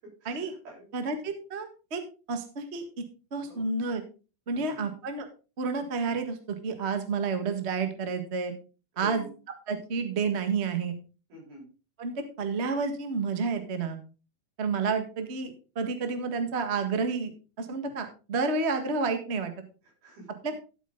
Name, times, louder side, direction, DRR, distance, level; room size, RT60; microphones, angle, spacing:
voice 1, 0.0-0.9 3.5-3.7 4.5-4.9 8.9-9.3 11.3-11.7 20.0-20.4, right 1 dB, 80° right, -3 dB, 8.9 m, -46 dB
voice 2, 0.9-2.0 2.3-3.0 3.3-4.0 4.5-5.2 5.6-6.4 6.6-8.5 9.0-9.2 9.7-10.9 12.0-14.0 14.6-17.3 17.6-19.5 20.4-20.5, right 4 dB, 60° right, 7 dB, 0.6 m, -30 dB
13.0 x 8.3 x 3.8 m, 0.33 s
omnidirectional pair, 4.2 m